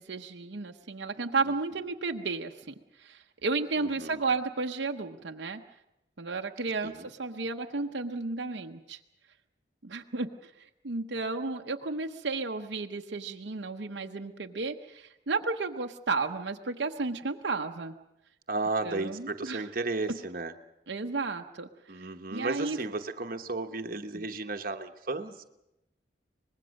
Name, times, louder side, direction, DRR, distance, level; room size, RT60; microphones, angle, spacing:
voice 1, 0.0-5.6 6.2-9.0 9.8-10.5 10.8-17.9 18.8-19.6 20.1-20.2 20.9-21.7 21.9-22.8 24.1-24.2, right 3 dB, 70° right, 3 dB, 0.8 m, -33 dB
voice 2, 3.8-4.2 6.8-7.1 18.5-20.5 21.9-25.4, right 3 dB, 50° right, 6 dB, 1.1 m, -34 dB
24.5 x 20.5 x 6.4 m, 0.89 s
head